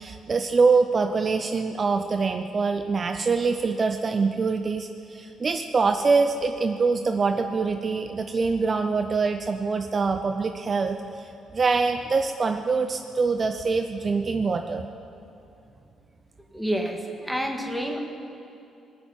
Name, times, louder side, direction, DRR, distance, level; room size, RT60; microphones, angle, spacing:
voice 1, 0.0-14.9, right 4 dB, 40° right, 6 dB, 0.7 m, -24 dB
voice 2, 16.5-18.0, equal, ahead, 3 dB, 1.9 m, -28 dB
20.5 x 7.6 x 9.1 m, 2.7 s
cardioid pair, 90°, 0 cm